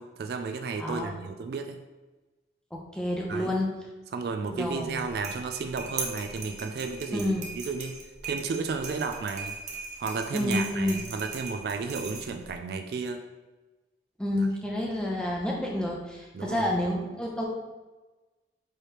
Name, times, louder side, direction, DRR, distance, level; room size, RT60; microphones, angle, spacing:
voice 1, 0.0-1.8 3.3-3.6 4.1-9.5 10.0-13.2 14.4-14.5 16.3-16.7, right 4 dB, 60° right, 6 dB, 0.3 m, -33 dB
voice 2, 0.8-1.2 2.7-3.7 4.4-5.1 7.1-7.4 10.3-11.0 14.2-17.4, left 1 dB, 5° left, -3 dB, 0.6 m, -29 dB
sound 1, 4.8-12.6, right 4 dB, 40° right, 0.7 m, -39 dB
4.7 x 3.2 x 3.0 m, 1.2 s
head